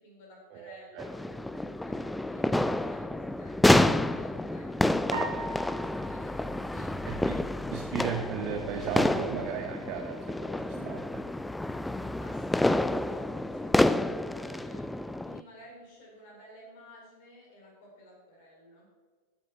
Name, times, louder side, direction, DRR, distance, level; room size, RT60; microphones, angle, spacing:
voice 1, 0.0-1.5 1.8-3.6 3.9-4.9 5.3-7.2 10.7-10.9 12.2-18.9, equal, 50° left, -1 dB, 4.3 m, -53 dB
voice 2, 0.5-1.1 7.1-7.3 7.7-11.0, right 8 dB, 40° right, 4 dB, 1.0 m, -35 dB
sound 1, 1.0-15.4, left 1 dB, 5° left, 0.4 m, -29 dB
sound 2, 5.1-7.6, right 2 dB, 65° right, 2.5 m, -40 dB
14.0 x 7.3 x 5.9 m, 1.5 s
figure-of-eight pair, 90°, 0 cm